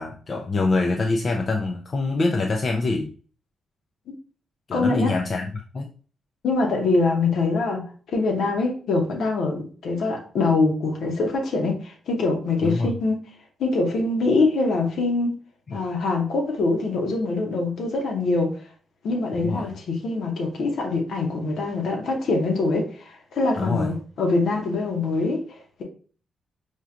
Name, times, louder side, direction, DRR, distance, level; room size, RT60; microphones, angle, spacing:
voice 1, 0.0-3.1 4.7-5.9 12.6-12.9 19.3-19.7 23.6-23.9, left 3 dB, 50° left, 1 dB, 0.4 m, -25 dB
voice 2, 4.7-5.1 6.4-13.2 13.6-15.3 15.7-18.6 19.0-25.4, left 3 dB, 70° left, 1 dB, 0.8 m, -24 dB
4.4 x 2.4 x 2.4 m, 0.41 s
supercardioid pair, 45°, 0 cm